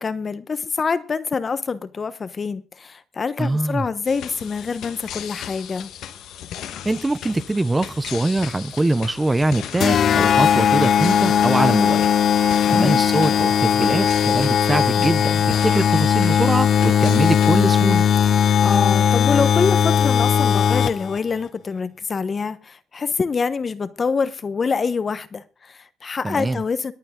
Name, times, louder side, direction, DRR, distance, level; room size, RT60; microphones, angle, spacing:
voice 1, 0.0-5.9 12.6-13.1 18.6-26.9, left 5 dB, 40° left, 1.1 m, -25 dB
voice 2, 3.4-3.8 6.8-12.1 12.4-18.0 26.2-26.6, right 2 dB, 15° right, 0.9 m, -23 dB
sound 1, 4.0-17.8, left 10 dB, 85° left, 1.4 m, -37 dB
sound 2, 9.8-21.2, left 8 dB, 60° left, 0.6 m, -18 dB
21.5 x 8.9 x 3.8 m
cardioid pair, 90°, 0 cm